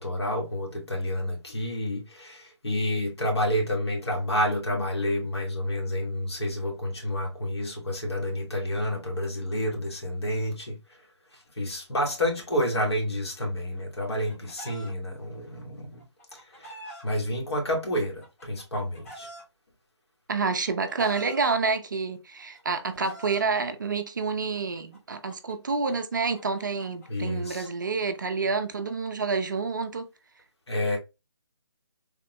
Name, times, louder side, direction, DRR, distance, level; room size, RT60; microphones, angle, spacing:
voice 1, 0.0-10.7 11.3-16.0 16.3-16.7 17.0-19.3 27.1-27.7 30.7-31.0, left 1 dB, 65° left, 1.4 m, -29 dB
Chicken rooster, 13.8-14.9 16.0-17.0 18.0-19.4 20.3-21.4 22.4-23.4 24.5-27.9, right 1 dB, 30° left, 1.0 m, -45 dB
voice 2, 20.3-30.1, right 4 dB, 45° right, 0.4 m, -28 dB
3.5 x 2.0 x 2.8 m
figure-of-eight pair, 160°, 15 cm